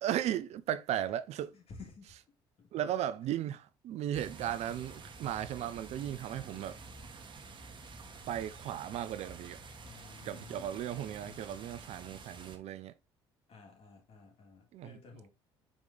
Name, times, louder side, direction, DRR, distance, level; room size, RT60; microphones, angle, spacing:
voice 1, 0.0-1.6 2.7-6.7 8.3-9.6 10.3-12.9 14.7-14.9, right 11 dB, 65° right, 0.6 m, -36 dB
voice 2, 1.5-2.1 2.6-3.1 6.3-6.9 9.8-11.6 13.5-15.3, left 4 dB, 55° left, 3.0 m, -54 dB
sound 1, 4.1-12.6, right 3 dB, 40° right, 1.4 m, -49 dB
5.2 x 4.9 x 3.9 m
supercardioid pair, 70°, 12 cm